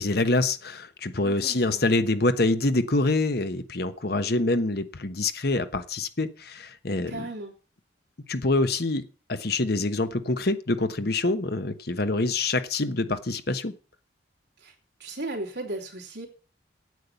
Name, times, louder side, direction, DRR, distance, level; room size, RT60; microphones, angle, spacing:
voice 1, 0.0-7.3 8.3-13.7, left 2 dB, 55° left, 1.1 m, -26 dB
voice 2, 1.2-1.8 7.1-7.5 14.6-14.7 15.0-16.3, right 2 dB, 65° right, 3.4 m, -36 dB
9.4 x 8.7 x 8.1 m
head